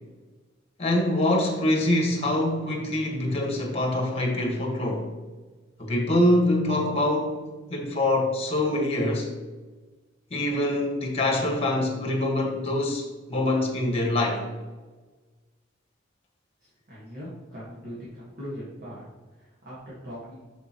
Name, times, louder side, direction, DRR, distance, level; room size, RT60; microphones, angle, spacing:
voice 1, 0.8-5.1 5.8-9.3 10.3-14.5, left 1 dB, 30° left, 0 dB, 1.6 m, -25 dB
voice 2, 16.6-20.5, equal, 50° right, -8 dB, 1.8 m, -41 dB
6.8 x 6.3 x 3.1 m, 1.3 s
head